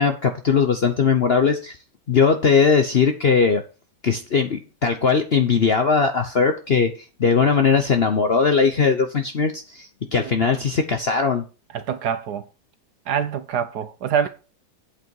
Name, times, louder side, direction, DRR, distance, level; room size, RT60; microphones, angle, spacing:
voice 1, 0.0-1.8 2.1-3.6 4.0-6.9 7.2-11.4, left 5 dB, 50° left, 0.8 m, -19 dB
voice 2, 10.2-10.6 11.7-12.4 13.1-14.3, right 8 dB, 65° right, 1.3 m, -25 dB
8.3 x 8.2 x 4.7 m
omnidirectional pair, 2.0 m